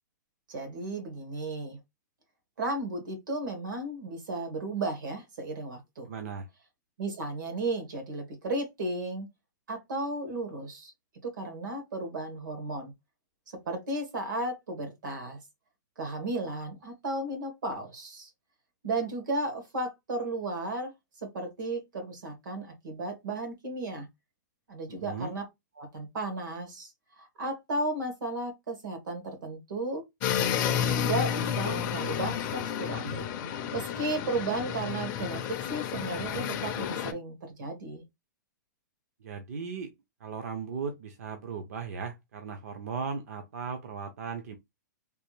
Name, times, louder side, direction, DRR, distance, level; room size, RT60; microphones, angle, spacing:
voice 1, 0.5-1.8 2.6-6.1 7.0-9.3 9.7-10.9 11.2-12.9 13.6-15.4 16.0-18.3 18.8-20.9 21.2-24.1 24.7-25.4 25.8-26.9 27.2-30.0 30.4-30.5 30.8-33.2 33.7-38.0, right 2 dB, 75° right, 1.6 m, -34 dB
voice 2, 6.1-6.5 24.9-25.3 39.2-39.9 40.2-44.6, right 5 dB, 50° right, 0.5 m, -37 dB
sound 1, 30.2-37.1, left 9 dB, 20° left, 0.4 m, -31 dB
3.3 x 2.5 x 3.1 m
hypercardioid pair, 175°, 10 cm